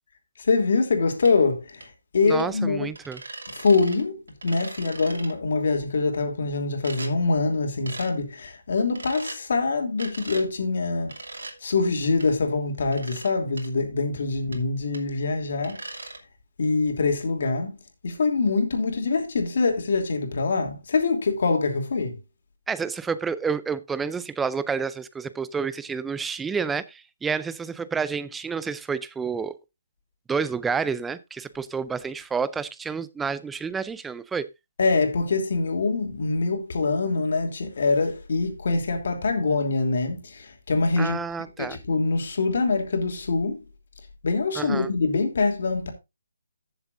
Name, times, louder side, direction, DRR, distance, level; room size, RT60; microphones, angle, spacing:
voice 1, 0.4-1.9 2.1-2.9 3.5-11.1 11.6-15.8 16.6-17.7 18.0-22.2 34.8-41.2 41.6-43.6 44.2-45.9, left 3 dB, 55° left, 3.0 m, -24 dB
sound 1, 1.2-1.3 1.8-1.9 2.4-2.5 2.9-4.0 4.3-5.3 6.8-7.1 7.9-8.1 8.9-9.4 10.0-10.5 11.1-11.5 12.2-12.3 12.9-13.3 13.6-13.7 14.5-14.6 14.9-15.0 15.6-16.2, right 2 dB, 90° right, 2.9 m, -39 dB
voice 2, 2.2-3.2 22.7-29.5 30.3-34.5 41.0-41.8 44.6-44.9, right 5 dB, 5° right, 0.5 m, -29 dB
14.5 x 7.2 x 2.6 m
hypercardioid pair, 165°, 0 cm